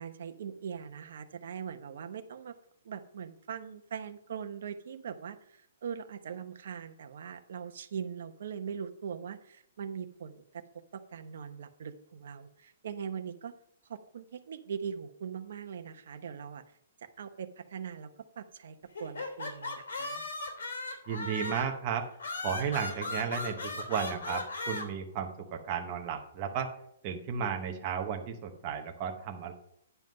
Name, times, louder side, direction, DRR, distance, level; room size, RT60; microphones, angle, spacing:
voice 1, 0.0-2.6 2.8-10.6 10.9-13.5 13.9-16.6 17.2-18.1 18.4-20.4, right 7 dB, 55° right, 8 dB, 0.8 m, -41 dB
sound 1, 19.0-21.8 22.2-24.8, left 3 dB, 85° left, 3.3 m, -37 dB
voice 2, 21.1-22.1 22.4-26.7 27.0-29.5, right 7 dB, 25° right, 3 dB, 0.8 m, -34 dB
9.2 x 5.7 x 5.3 m, 0.70 s
hypercardioid pair, 175°, 0 cm